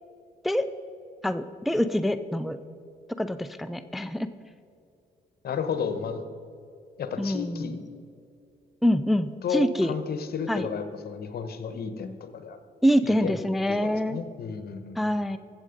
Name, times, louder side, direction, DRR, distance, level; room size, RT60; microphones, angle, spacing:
voice 1, 1.2-2.6 3.2-4.3 7.2-7.8 8.8-9.9 10.5-10.7 12.8-14.2 15.0-15.4, equal, ahead, 10 dB, 0.5 m, -25 dB
voice 2, 5.4-6.2 7.0-7.8 9.4-12.6 13.0-13.4 13.7-15.1, left 6 dB, 60° left, 9 dB, 1.2 m, -32 dB
15.0 x 7.6 x 5.3 m, 2.5 s
cardioid pair, 75°, 18 cm